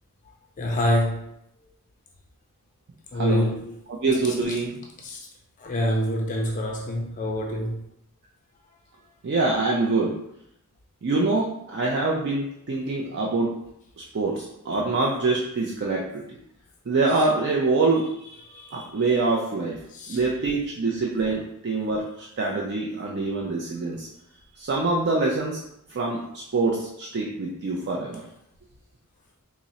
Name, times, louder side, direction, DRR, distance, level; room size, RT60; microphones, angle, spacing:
voice 1, 0.6-1.3 3.1-3.7 4.3-4.4 5.0-5.3 5.6-7.8 19.9-20.2, left 1 dB, 35° left, 1 dB, 0.4 m, -26 dB
voice 2, 3.1-3.5 4.0-4.8 9.2-10.2 11.0-13.5 14.1-16.4 16.9-19.8 20.1-24.1 24.6-25.6 25.9-28.2, right 3 dB, 50° right, -2 dB, 0.4 m, -25 dB
3.6 x 2.0 x 4.0 m, 0.77 s
head